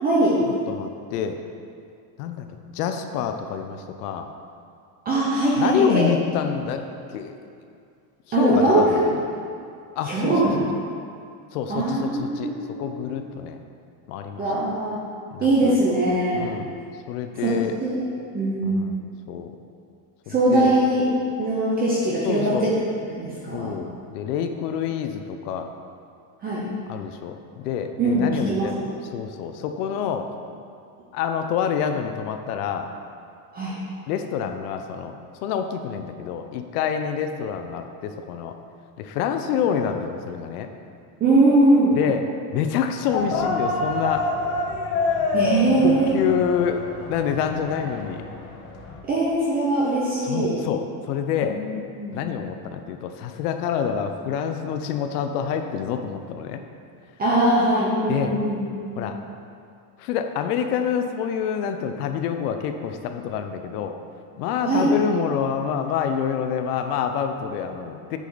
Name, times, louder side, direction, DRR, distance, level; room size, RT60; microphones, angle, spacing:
voice 1, 0.0-0.4 5.0-6.0 8.3-8.9 10.0-10.6 11.7-12.8 14.4-15.0 15.4-16.5 17.4-18.0 18.3-18.9 20.3-21.1 21.4-22.7 23.1-23.8 26.4-26.7 28.0-28.7 33.5-33.8 41.2-41.9 45.3-46.1 49.1-50.6 51.4-51.6 51.9-52.2 57.2-59.0 64.7-64.9, right 2 dB, 20° right, -6 dB, 0.8 m, -21 dB
voice 2, 0.7-1.4 2.2-4.3 5.6-6.8 7.1-7.3 8.3-9.0 10.0-10.4 11.5-12.5 12.8-13.6 14.1-14.4 15.3-15.8 16.3-16.7 17.1-17.7 18.6-19.5 20.3-20.7 22.2-22.7 23.5-25.7 26.9-28.7 29.1-30.3 31.1-32.9 34.1-35.1 35.4-38.5 39.0-40.7 42.0-42.3 42.5-44.3 45.8-46.8 47.1-48.2 50.2-51.6 52.1-56.6 58.1-58.4 59.0-59.2 60.0-64.0 64.4-68.2, left 8 dB, 90° left, 6 dB, 0.7 m, -27 dB
sound 1, 43.1-49.0, left 3 dB, 30° left, 0.7 m, -27 dB
8.3 x 5.0 x 4.0 m, 2.4 s
cardioid pair, 165°, 45 cm